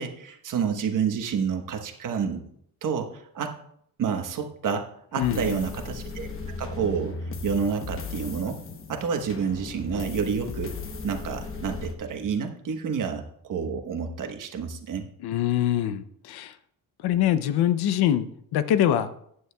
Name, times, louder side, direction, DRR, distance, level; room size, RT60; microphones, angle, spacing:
voice 1, 0.0-2.4 2.8-3.5 4.0-4.8 5.1-6.3 6.6-7.1 7.4-8.6 8.9-10.7 11.0-15.1, right 6 dB, 55° right, 5 dB, 1.3 m, -29 dB
voice 2, 5.2-5.7 15.2-16.6 17.0-18.3 18.5-19.1, left 11 dB, 75° left, 12 dB, 0.7 m, -24 dB
sound 1, 5.2-11.9, left 4 dB, 35° left, 1.0 m, -36 dB
15.0 x 9.5 x 2.3 m, 0.68 s
cardioid pair, 135°, 39 cm